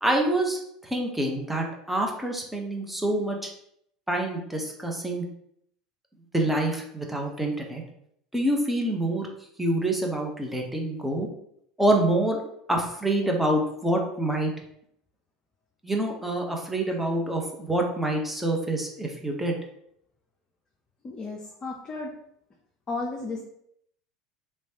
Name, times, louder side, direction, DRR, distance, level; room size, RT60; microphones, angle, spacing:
voice 1, 0.0-3.5 4.1-5.2 6.3-7.8 8.3-9.3 9.6-11.3 11.8-12.4 12.7-14.5 15.8-19.5, right 1 dB, 5° right, 1 dB, 0.8 m, -26 dB
voice 2, 21.0-22.1 22.9-23.4, left 3 dB, 30° left, 0 dB, 0.6 m, -33 dB
3.2 x 3.1 x 2.9 m, 0.71 s
hypercardioid pair, 75°, 3 cm